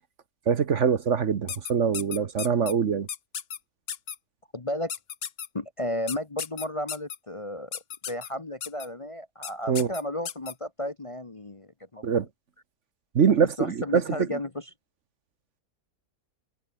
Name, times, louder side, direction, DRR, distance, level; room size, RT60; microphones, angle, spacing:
voice 1, 0.5-3.1 9.7-9.9 12.0-12.3 13.1-14.3, right 7 dB, 55° right, 1.3 m, -23 dB
sound 1, 1.5-2.7 3.1-3.6 3.9-4.2 4.9-5.5 6.1-7.2 7.7-8.3 8.6-8.9 9.4-9.5 9.8-10.5, left 8 dB, 45° left, 1.0 m, -34 dB
voice 2, 4.5-4.9 5.5-12.2 13.6-14.7, left 1 dB, 25° left, 1.0 m, -33 dB
omnidirectional pair, 1.6 m